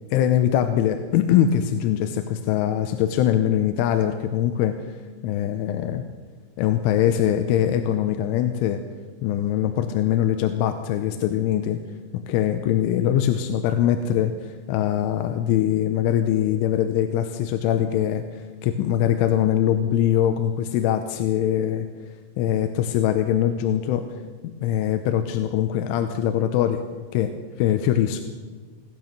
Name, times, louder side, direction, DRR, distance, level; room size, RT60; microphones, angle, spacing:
voice 1, 0.1-5.0 5.2-6.0 6.6-8.8 9.2-11.8 12.3-21.9 22.4-24.1 24.6-26.8 27.1-27.3 27.6-28.2, left 10 dB, 80° left, 7 dB, 3.0 m, -22 dB
18.5 x 11.0 x 6.5 m, 1.5 s
omnidirectional pair, 6.0 m